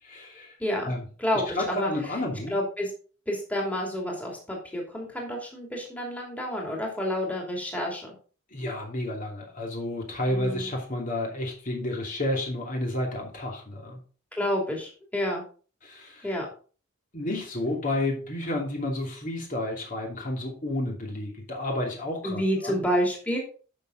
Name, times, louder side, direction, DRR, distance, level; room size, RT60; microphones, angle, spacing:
voice 1, 0.0-0.6 0.8-1.1 1.5-2.5 8.5-14.0 15.8-16.4 17.1-22.8, left 1 dB, 40° left, 0 dB, 2.8 m, -31 dB
voice 2, 0.6-0.9 1.2-1.9 2.5-2.9 3.3-8.1 10.3-10.7 14.4-15.4 16.2-16.4 22.2-23.4, equal, 5° left, -2 dB, 2.9 m, -29 dB
11.5 x 6.4 x 4.0 m, 0.39 s
head